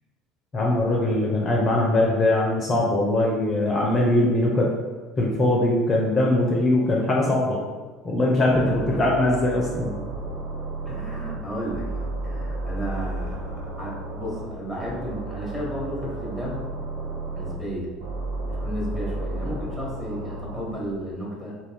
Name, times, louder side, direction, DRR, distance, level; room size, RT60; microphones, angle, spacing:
voice 1, 0.5-4.7 5.2-7.6 8.0-9.9, left 1 dB, 30° left, -3 dB, 0.5 m, -21 dB
voice 2, 8.2-9.0 10.9-16.6 17.3-17.9 18.4-21.6, equal, 5° right, -5 dB, 1.1 m, -33 dB
sound 1, 8.5-11.4 11.7-14.5 14.8-17.5 18.0-20.6, right 2 dB, 65° right, 0.5 m, -32 dB
2.4 x 2.2 x 3.4 m, 1.4 s
figure-of-eight pair, 65°, 0 cm